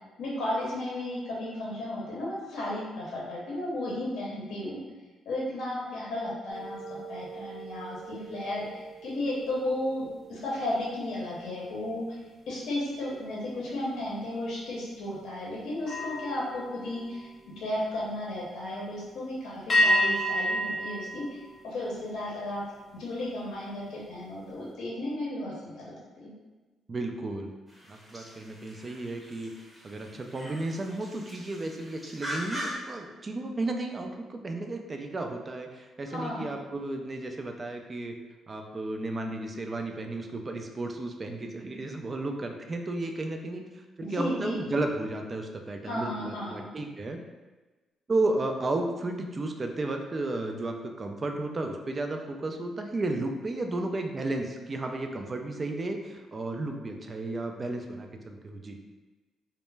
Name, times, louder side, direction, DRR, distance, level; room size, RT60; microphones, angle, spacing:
voice 1, 0.2-4.8 5.3-6.8 7.1-12.2 12.5-17.3 17.6-21.4 21.6-22.6 22.9-26.3 36.1-36.5 44.0-44.6 45.8-46.6, left 1 dB, 75° left, -5 dB, 0.6 m, -34 dB
sound 1, 6.5-12.1 12.5-12.8 15.8-18.0 19.7-22.3, equal, 35° left, 0.4 m, -32 dB
voice 2, 26.9-27.5 27.9-29.5 29.8-38.2 38.5-43.6 44.0-47.2 48.1-58.8, right 2 dB, 35° right, 4 dB, 0.3 m, -33 dB
sound 2, 27.7-32.7, equal, 10° right, 0.7 m, -41 dB
2.1 x 2.0 x 3.2 m, 1.2 s
cardioid pair, 90°, 0 cm